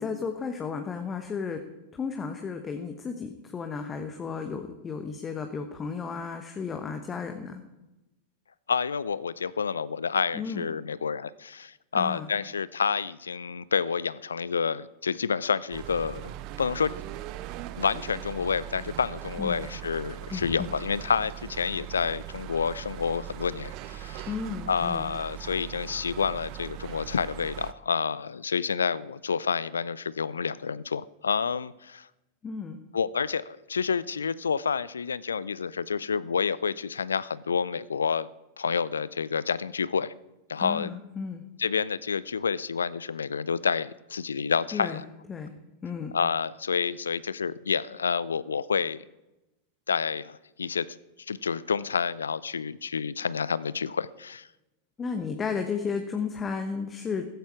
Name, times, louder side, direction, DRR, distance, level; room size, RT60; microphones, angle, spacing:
voice 1, 0.0-1.6 1.9-7.6 10.3-10.7 11.9-12.3 19.4-19.7 20.3-20.7 24.3-25.1 32.4-32.8 40.6-41.4 44.7-45.0 45.3-45.5 45.8-46.2 55.0-57.3, left 5 dB, 20° left, 5 dB, 1.2 m, -33 dB
voice 2, 8.7-16.9 17.8-24.3 24.7-32.1 32.9-38.3 38.6-40.1 40.5-40.9 41.6-45.0 46.1-49.0 49.9-50.9 51.3-54.5, left 6 dB, 70° left, 19 dB, 0.5 m, -29 dB
sound 1, 15.7-27.7, right 13 dB, 40° right, 0.7 m, -40 dB
15.5 x 14.5 x 4.7 m, 0.99 s
figure-of-eight pair, 90°, 0 cm